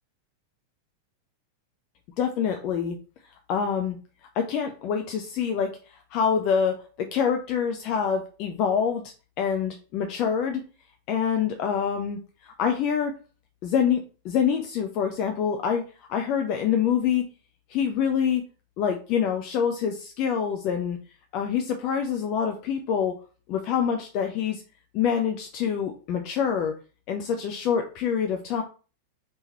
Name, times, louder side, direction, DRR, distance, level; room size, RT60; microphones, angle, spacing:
voice 1, 2.2-3.0 3.5-4.0 4.3-5.7 6.1-10.6 11.1-13.1 13.6-17.3 17.7-18.4 18.8-21.0 21.3-23.2 23.5-24.6 24.9-26.8 27.1-28.6, left 7 dB, 40° left, 4 dB, 0.4 m, -26 dB
3.5 x 2.9 x 2.9 m, 0.36 s
figure-of-eight pair, 90°, 0 cm